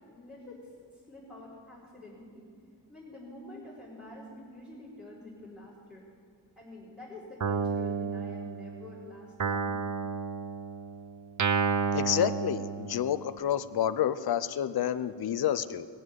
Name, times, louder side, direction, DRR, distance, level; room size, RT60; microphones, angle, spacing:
voice 1, 0.1-0.7 1.1-2.4 2.9-6.0 6.6-9.8, left 1 dB, ahead, -11 dB, 4.4 m, -47 dB
Guitar, 7.4-8.9 9.4-13.3, right 5 dB, 45° right, 0.8 m, -31 dB
voice 2, 11.9-15.9, left 10 dB, 60° left, 12 dB, 0.6 m, -29 dB
20.5 x 7.5 x 8.0 m, 2.3 s
wide cardioid pair, 140°, 43 cm